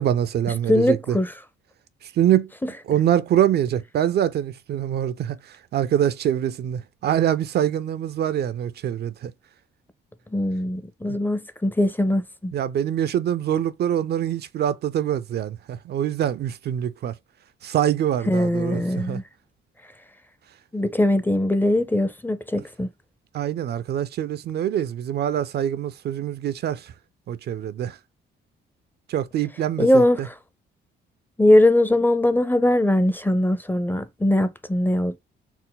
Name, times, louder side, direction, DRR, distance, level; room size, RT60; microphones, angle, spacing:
voice 1, 0.0-1.2 2.0-2.5 2.9-9.3 12.5-17.1 17.6-19.2 23.3-26.9 27.3-28.0 29.1-30.3, right 10 dB, 55° right, 0.4 m, -24 dB
voice 2, 0.7-1.3 2.6-2.7 10.3-12.5 18.3-19.2 20.7-22.9 29.8-30.3 31.4-35.2, left 1 dB, 10° left, 0.5 m, -21 dB
4.3 x 2.0 x 3.8 m
cardioid pair, 90°, 20 cm